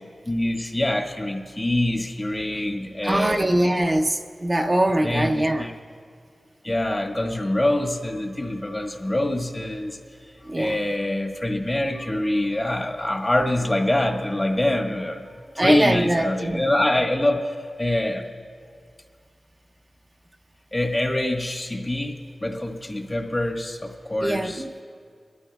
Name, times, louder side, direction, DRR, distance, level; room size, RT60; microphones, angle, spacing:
voice 1, 0.3-3.4 5.0-5.7 6.6-10.0 10.6-15.3 15.5-18.2 20.7-22.1 22.4-24.6, left 1 dB, 30° left, 1.4 m, -25 dB
voice 2, 3.0-5.7 10.5-10.8 15.6-16.6 24.2-24.6, right 1 dB, 35° right, 0.6 m, -22 dB
23.0 x 13.0 x 2.3 m
cardioid pair, 45°, 0 cm